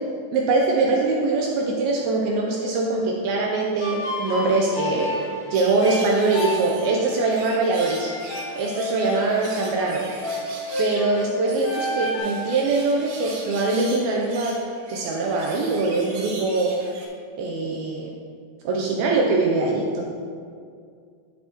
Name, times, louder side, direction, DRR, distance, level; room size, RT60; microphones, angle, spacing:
voice 1, 0.3-5.1 5.5-8.1 8.6-10.1 10.8-14.6 14.9-16.8 17.4-18.1 18.7-20.1, right 3 dB, 80° right, -1 dB, 2.2 m, -22 dB
sound 1, 3.8-12.2, left 1 dB, 85° left, 3.9 m, -31 dB
sound 2, 5.5-17.1, right 3 dB, 65° right, 2.7 m, -40 dB
12.0 x 5.6 x 3.0 m, 2.2 s
omnidirectional pair, 4.8 m